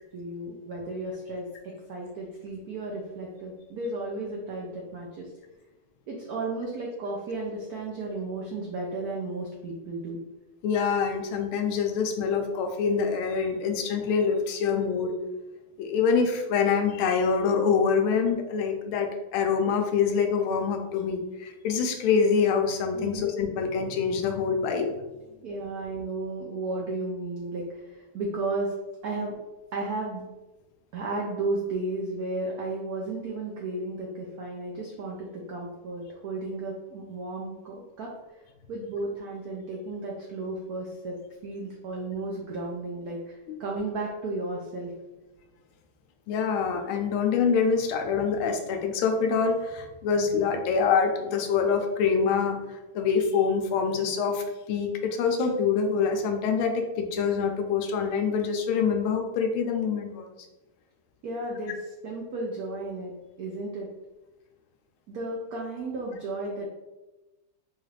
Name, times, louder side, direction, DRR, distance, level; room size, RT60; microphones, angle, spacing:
voice 1, 0.1-5.3 6.1-10.2 22.9-23.2 25.4-28.7 29.0-29.3 29.7-30.2 30.9-38.4 38.7-41.1 41.4-44.9 61.2-63.1 63.4-63.9 65.1-66.7, right 2 dB, 80° right, -2 dB, 0.8 m, -34 dB
voice 2, 10.6-15.1 15.8-24.9 46.3-60.5, left 6 dB, 80° left, 4 dB, 1.4 m, -25 dB
4.2 x 2.4 x 3.2 m, 1.1 s
omnidirectional pair, 2.3 m